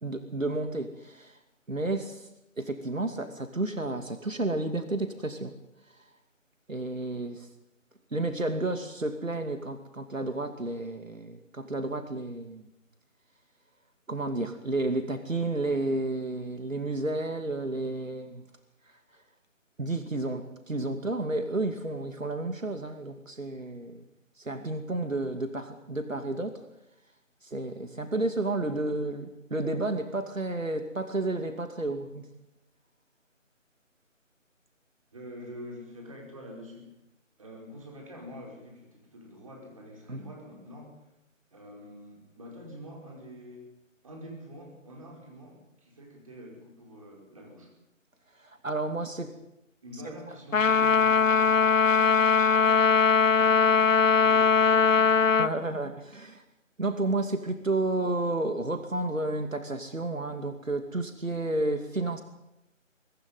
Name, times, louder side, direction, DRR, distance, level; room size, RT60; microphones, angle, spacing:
voice 1, 0.0-1.4 1.7-2.3 2.6-5.5 6.7-7.5 8.1-12.6 14.1-18.4 19.8-24.0 24.4-26.6 27.4-32.3 40.1-40.2 48.4-49.3 55.4-56.4 56.8-62.2, right 2 dB, 75° right, 8 dB, 2.6 m, -31 dB
voice 2, 35.1-36.9 37.4-41.0 41.5-43.7 44.0-47.7 49.8-55.8, equal, 25° right, 0 dB, 5.1 m, -46 dB
Trumpet, 50.5-55.5, left 6 dB, 75° left, 0.7 m, -21 dB
23.5 x 14.5 x 9.3 m, 0.88 s
figure-of-eight pair, 170°, 39 cm